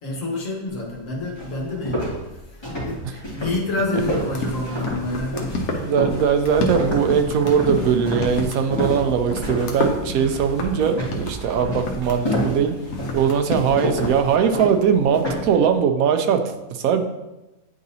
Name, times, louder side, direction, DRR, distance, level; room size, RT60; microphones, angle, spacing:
voice 1, 0.0-5.9, left 2 dB, 65° left, -2 dB, 1.7 m, -28 dB
sound 1, 0.9-1.0 1.4-9.8 10.1-10.5 10.9-15.6, equal, 20° left, 1.7 m, -28 dB
sound 2, 3.9-14.4, left 2 dB, 85° left, 1.3 m, -30 dB
voice 2, 5.6-12.7 13.1-17.0, right 7 dB, 85° right, 7 dB, 1.1 m, -20 dB
sound 3, 6.3-12.6, right 6 dB, 60° right, 0.5 m, -40 dB
9.3 x 3.9 x 2.8 m, 1.0 s
omnidirectional pair, 1.5 m